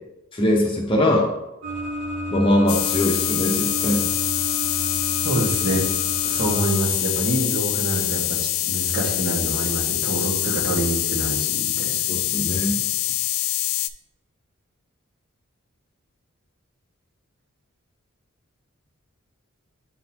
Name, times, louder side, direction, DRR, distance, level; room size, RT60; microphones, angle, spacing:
voice 1, 0.3-1.3 2.3-4.1 12.1-12.8, left 1 dB, 25° left, -1 dB, 0.8 m, -21 dB
sound 1, 1.6-6.7, equal, 60° right, 1.7 m, -31 dB
sound 2, 2.7-13.9, left 14 dB, 70° left, 0.3 m, -25 dB
voice 2, 5.2-5.8 6.2-11.9, right 1 dB, 45° right, -3 dB, 1.7 m, -26 dB
9.4 x 3.9 x 2.9 m, 0.89 s
head